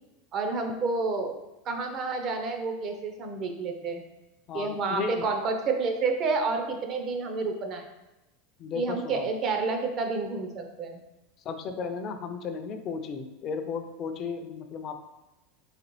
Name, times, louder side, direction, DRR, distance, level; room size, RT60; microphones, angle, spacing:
voice 1, 0.3-1.4 1.7-4.0 4.5-7.8 8.7-11.0, right 4 dB, 40° right, 5 dB, 0.6 m, -29 dB
voice 2, 4.5-5.3 8.6-9.3 11.5-15.0, left 5 dB, 40° left, 7 dB, 0.4 m, -34 dB
4.0 x 3.2 x 3.0 m, 0.99 s
supercardioid pair, 120°, 0 cm